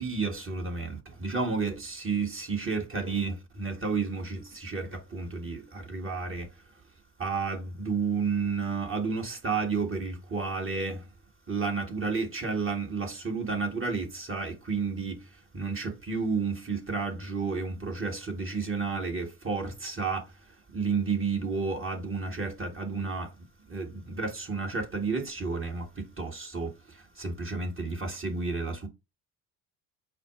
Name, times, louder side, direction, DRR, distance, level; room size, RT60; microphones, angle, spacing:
voice 1, 0.0-6.5 7.2-11.0 11.5-20.3 20.7-23.3 23.7-28.9, right 4 dB, 25° right, 1.6 m, -31 dB
4.9 x 2.2 x 4.7 m
hypercardioid pair, 55°, 46 cm